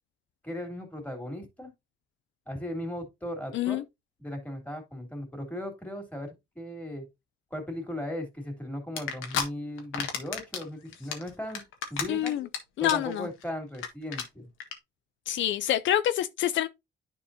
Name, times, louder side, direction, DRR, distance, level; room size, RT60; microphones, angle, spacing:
voice 1, 0.4-1.7 2.5-3.8 4.2-7.1 7.5-11.6 11.9-12.4 12.8-14.4, left 1 dB, 5° left, 3.1 m, -37 dB
sound 1, 9.0-9.4 9.8-10.6 10.9-12.6 12.8-13.1 13.4-13.5 13.7-13.9 14.1-14.2 14.6-14.7, left 8 dB, 90° left, 1.6 m, -31 dB
voice 2, 12.1-12.5 12.8-13.3 15.3-16.7, left 12 dB, 75° left, 0.5 m, -27 dB
10.5 x 4.6 x 2.7 m
cardioid pair, 90°, 20 cm